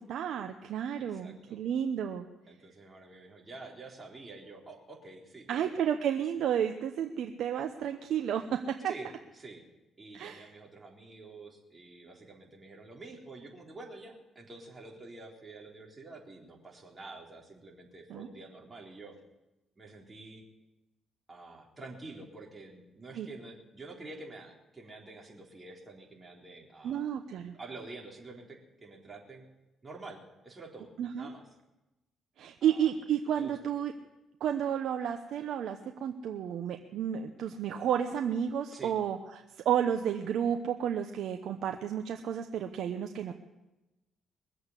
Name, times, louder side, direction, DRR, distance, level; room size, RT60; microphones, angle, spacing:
voice 1, 0.0-2.3 5.5-8.9 10.1-10.5 18.1-18.3 23.2-23.3 26.8-27.6 31.0-31.3 32.4-33.9 34.4-43.3, right 9 dB, 75° right, 5 dB, 0.9 m, -32 dB
voice 2, 0.9-1.6 2.5-5.7 8.9-9.6 10.0-19.2 19.8-20.4 21.3-27.0 27.5-29.5 29.8-31.5 32.6-32.9 33.4-33.6 38.7-39.0, right 3 dB, 25° right, -1 dB, 3.8 m, -48 dB
21.0 x 8.0 x 8.1 m, 1.0 s
cardioid pair, 90°, 0 cm